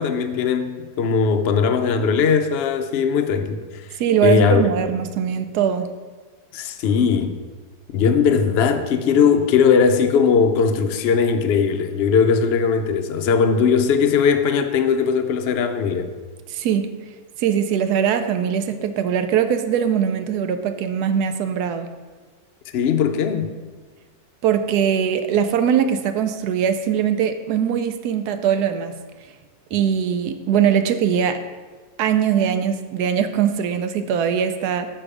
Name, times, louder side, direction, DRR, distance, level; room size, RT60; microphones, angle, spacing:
voice 1, 0.0-3.9 4.2-4.6 6.5-7.4 7.9-16.1 22.7-23.5, left 6 dB, 65° left, 0.6 m, -19 dB
voice 2, 4.0-5.9 16.5-16.9 17.4-21.9 24.4-28.9 29.7-31.4 32.0-34.9, right 8 dB, 80° right, 1.1 m, -21 dB
6.6 x 6.0 x 4.9 m
omnidirectional pair, 1.7 m